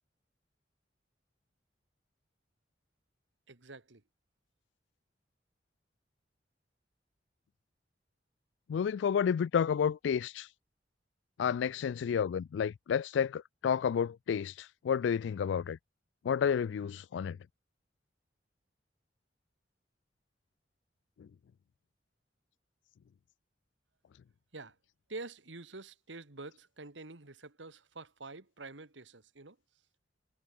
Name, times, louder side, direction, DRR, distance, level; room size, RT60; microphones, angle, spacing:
voice 1, 3.5-4.0 24.5-24.7 25.1-29.6, right 3 dB, 90° right, 2.0 m, -47 dB
voice 2, 8.7-10.5 11.4-14.5 14.8-15.8 16.2-17.4 21.2-21.3, left 7 dB, 70° left, 0.3 m, -30 dB
head